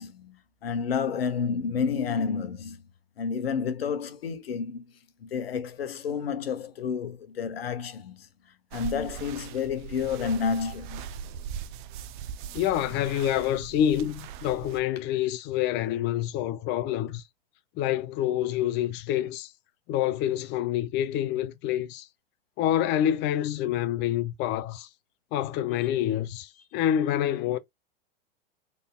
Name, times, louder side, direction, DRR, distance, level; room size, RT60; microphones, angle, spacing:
voice 1, 0.0-2.8 3.2-4.9 5.2-8.3 8.7-11.0, left 6 dB, 85° left, 1.0 m, -30 dB
sound 1, 8.7-14.8, right 8 dB, 55° right, 0.6 m, -40 dB
voice 2, 12.5-17.2 17.8-19.5 19.9-22.1 22.6-24.9 25.3-27.6, left 11 dB, 40° left, 0.5 m, -27 dB
4.0 x 3.5 x 2.3 m
hypercardioid pair, 110°, 29 cm